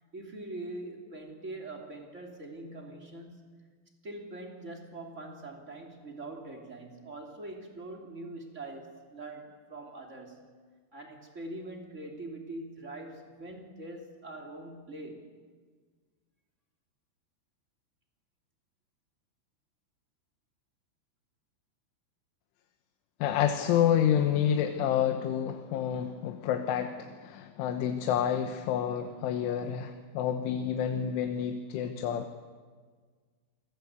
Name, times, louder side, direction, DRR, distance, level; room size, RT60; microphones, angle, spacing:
voice 1, 0.1-3.5 4.0-10.5 10.9-15.3, right 2 dB, 20° right, 2 dB, 2.5 m, -43 dB
voice 2, 23.2-32.3, left 9 dB, 80° left, 6 dB, 3.6 m, -29 dB
29.0 x 21.5 x 8.2 m, 1.5 s
omnidirectional pair, 5.6 m